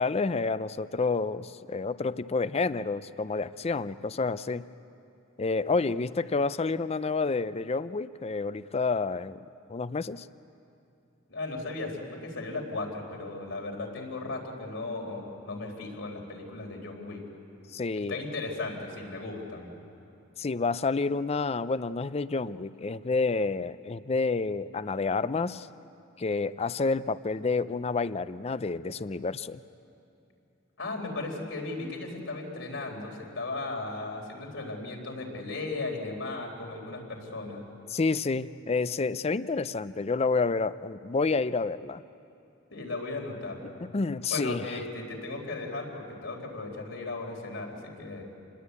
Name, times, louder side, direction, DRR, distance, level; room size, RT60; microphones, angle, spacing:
voice 1, 0.0-4.7 5.4-10.3 17.7-18.2 20.4-25.7 26.2-29.6 37.9-42.0 43.9-44.7, left 4 dB, 30° left, 15 dB, 0.5 m, -29 dB
voice 2, 11.3-17.2 17.9-19.7 30.8-37.6 42.7-43.6 44.3-48.2, left 2 dB, 80° left, 0 dB, 4.2 m, -36 dB
27.0 x 20.5 x 8.3 m, 2.7 s
head